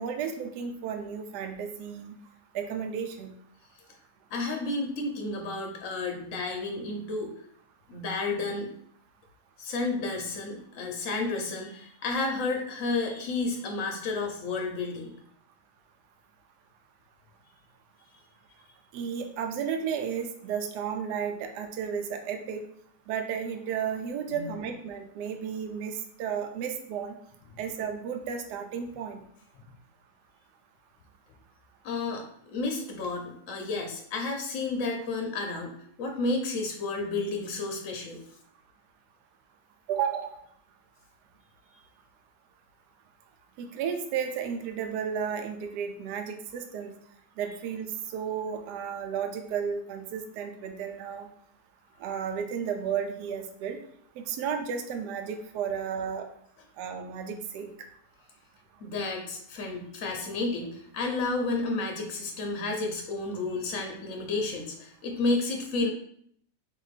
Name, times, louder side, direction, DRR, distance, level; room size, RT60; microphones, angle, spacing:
voice 1, 0.0-2.1 2.5-3.3 18.9-22.6 23.1-27.1 27.6-29.2 39.9-40.3 43.6-46.9 47.4-51.3 52.0-53.8 54.2-56.3 56.8-57.7, right 7 dB, 70° right, 5 dB, 1.1 m, -33 dB
voice 2, 4.3-7.3 7.9-8.7 9.6-15.1 24.3-24.5 27.5-27.6 31.8-38.2 58.8-65.9, left 3 dB, 60° left, 2 dB, 0.9 m, -31 dB
4.0 x 2.9 x 4.0 m, 0.66 s
omnidirectional pair, 1.9 m